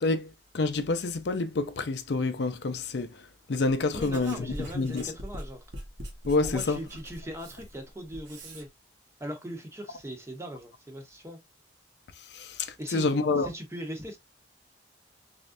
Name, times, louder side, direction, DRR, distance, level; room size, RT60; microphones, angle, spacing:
voice 1, 0.0-5.1 6.3-6.8 12.3-13.5, left 3 dB, 65° left, 0.5 m, -28 dB
voice 2, 3.9-5.6 6.4-8.7 9.2-11.4 12.8-13.1 13.4-14.2, equal, 15° right, 0.9 m, -39 dB
Writing, 3.9-8.7, equal, 75° right, 1.2 m, -42 dB
3.7 x 3.3 x 2.5 m
head